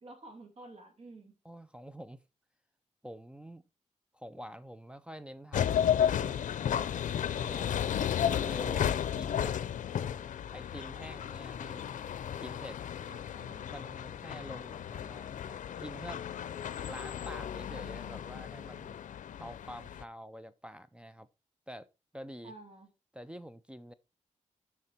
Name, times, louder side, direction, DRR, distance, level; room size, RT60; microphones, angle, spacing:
voice 1, 0.0-1.3 13.1-13.7 22.4-22.9, right 2 dB, 55° right, 2.3 m, -51 dB
voice 2, 1.4-2.2 3.0-3.7 4.1-6.3 7.4-7.9 8.3-9.6 10.5-11.9 12.4-12.8 13.7-16.3 16.9-19.0 19.4-21.3 21.7-22.5 23.1-23.9, equal, 10° right, 0.4 m, -47 dB
sound 1, 5.5-20.0, left 9 dB, 90° left, 0.5 m, -33 dB
7.8 x 5.9 x 4.2 m
wide cardioid pair, 135°, 13 cm